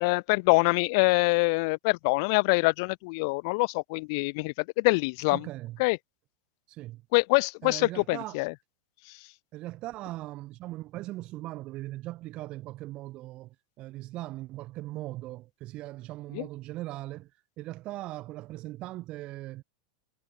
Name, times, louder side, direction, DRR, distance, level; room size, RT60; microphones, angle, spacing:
voice 1, 0.0-5.5 5.8-6.0 7.1-8.5 16.3-16.5, left 29 dB, 55° left, 0.4 m, -25 dB
voice 2, 5.3-5.8 6.7-7.0 7.6-8.4 9.5-17.3 17.6-19.6, right 17 dB, 45° right, 1.1 m, -39 dB
hypercardioid pair, 110°, 3 cm